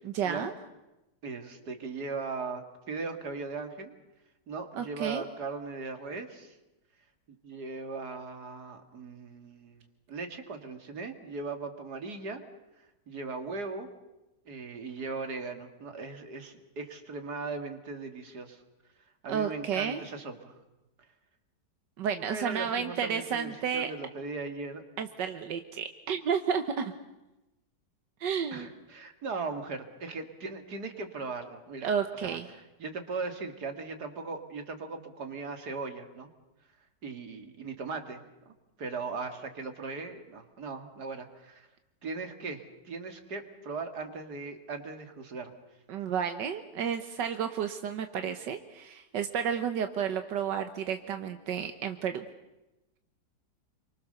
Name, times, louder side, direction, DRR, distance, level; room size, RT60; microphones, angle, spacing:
voice 1, 0.1-0.5 4.8-5.2 19.3-20.0 22.0-23.9 25.0-26.9 28.2-28.7 31.8-32.5 45.9-52.3, right 7 dB, 90° right, 8 dB, 1.8 m, -31 dB
voice 2, 1.2-3.9 4.5-6.6 7.3-9.8 10.1-12.4 13.1-13.9 14.5-18.6 19.2-20.5 22.3-24.8 28.5-31.9 32.2-32.4 32.8-36.3 37.0-38.5 38.8-41.7 42.0-45.5, right 4 dB, 65° right, 6 dB, 2.8 m, -38 dB
29.5 x 24.0 x 6.8 m, 1.0 s
omnidirectional pair, 1.8 m